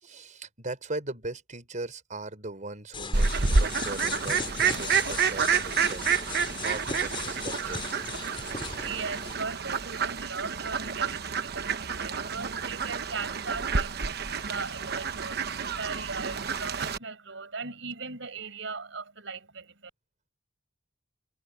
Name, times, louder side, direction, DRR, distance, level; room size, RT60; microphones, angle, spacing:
voice 1, 0.0-7.8, right 2 dB, 40° right, 4.7 m, -39 dB
sound 1, 2.9-9.3, left 4 dB, 30° left, 5.8 m, -37 dB
Fowl, 3.1-17.0, right 5 dB, 55° right, 1.0 m, -29 dB
voice 2, 8.5-19.9, right 4 dB, 75° right, 6.1 m, -38 dB
head